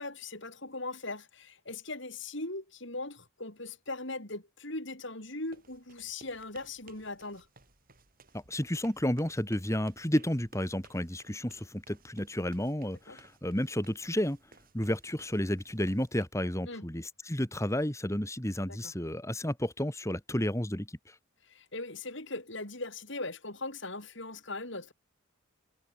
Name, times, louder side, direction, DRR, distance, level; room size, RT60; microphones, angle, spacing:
voice 1, 0.0-7.5 13.1-13.2 16.7-16.9 18.7-18.9 21.4-24.9, left 2 dB, 60° left, 5.9 m, -39 dB
sound 1, 5.4-16.2, right 3 dB, 45° right, 6.8 m, -59 dB
voice 2, 8.3-14.4 14.7-21.0, equal, 15° left, 2.5 m, -32 dB
head